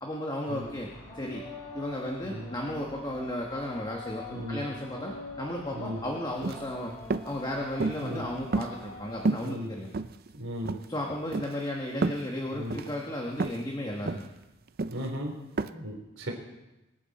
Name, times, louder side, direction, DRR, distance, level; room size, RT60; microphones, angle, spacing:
voice 1, 0.0-1.4 1.7-6.9 7.2-9.9 10.9-14.3, left 1 dB, 20° left, -1 dB, 1.4 m, -34 dB
sound 1, 0.6-9.3, left 2 dB, 55° left, 4.8 m, -44 dB
voice 2, 4.3-4.6 5.7-6.0 8.0-8.2 9.4-9.7 10.3-10.7 12.5-12.8 14.9-15.3 15.6-16.3, equal, 75° right, 1 dB, 3.7 m, -36 dB
sound 2, 6.4-6.7 7.1-7.3 7.8-8.1 8.5-9.0 9.3-9.5 9.9-10.4 10.7-10.9 11.3-11.6 12.0-12.3 12.7-12.9 13.4-13.6 14.1-14.3 14.8-15.1 15.6-15.7, right 3 dB, 50° right, 0.5 m, -30 dB
24.5 x 9.6 x 4.3 m, 0.99 s
head